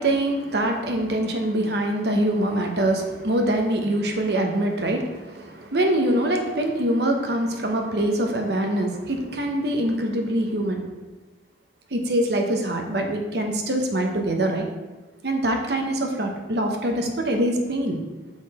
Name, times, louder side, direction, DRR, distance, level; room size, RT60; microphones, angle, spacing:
voice 1, 0.0-10.8 11.9-14.7 15.2-18.0, right 1 dB, 60° right, 3 dB, 0.9 m, -24 dB
6.4 x 3.8 x 4.8 m, 1.2 s
head